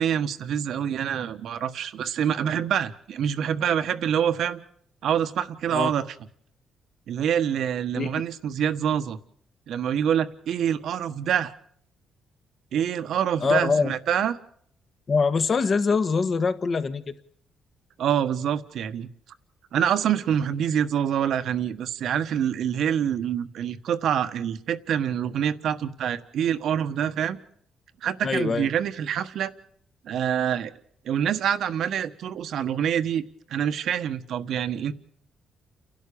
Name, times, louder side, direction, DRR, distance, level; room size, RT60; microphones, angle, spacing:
voice 1, 0.0-4.6 5.0-6.1 7.1-9.2 9.7-11.5 12.7-14.4 18.0-19.1 19.7-27.4 28.0-29.5 30.0-30.7 31.0-33.2 33.5-34.9, right 9 dB, 70° right, 1.4 m, -26 dB
voice 2, 13.4-13.9 15.1-17.1 28.2-28.7, left 4 dB, 45° left, 1.6 m, -23 dB
29.5 x 12.0 x 8.6 m
cardioid pair, 90°, 0 cm